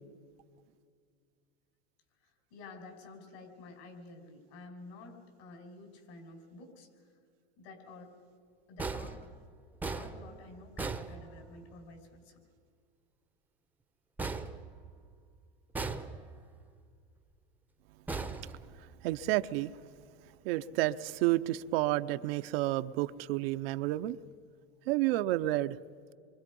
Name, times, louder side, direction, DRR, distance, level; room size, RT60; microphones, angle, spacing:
voice 1, 2.2-7.1 7.6-8.2 8.7-9.4 9.9-12.4, left 3 dB, 65° left, 5.7 m, -51 dB
sound 1, 8.8-11.8 14.2-15.3 15.7-16.6 18.1-19.2, right 3 dB, 5° right, 0.8 m, -39 dB
voice 2, 19.0-19.7 20.4-24.2 24.9-25.8, right 16 dB, 60° right, 0.7 m, -30 dB
28.0 x 24.5 x 5.4 m
supercardioid pair, 135°, 34 cm